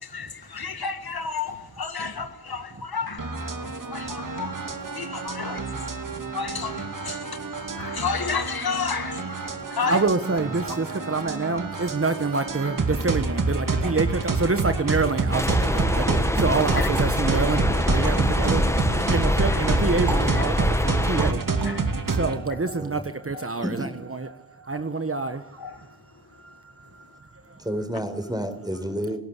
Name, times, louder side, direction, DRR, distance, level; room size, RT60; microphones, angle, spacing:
voice 1, 0.0-3.3 3.6-5.9 6.3-7.4 7.8-10.0 16.7-16.9 17.9-18.0 19.5-19.6 21.6-21.9 23.3-23.5 25.6-25.8, left 5 dB, 70° left, 1.8 m, -32 dB
sound 1, 3.2-22.4, right 3 dB, 55° right, 2.4 m, -28 dB
voice 2, 9.6-25.9 26.3-27.6, right 3 dB, 35° right, 1.3 m, -27 dB
sound 2, 15.3-21.3, left 1 dB, 5° left, 1.1 m, -24 dB
sound 3, 16.9-19.4 20.1-22.9, right 3 dB, 80° right, 5.0 m, -37 dB
voice 3, 27.6-29.2, equal, 10° right, 4.6 m, -30 dB
27.0 x 12.0 x 8.3 m
cardioid pair, 45°, 39 cm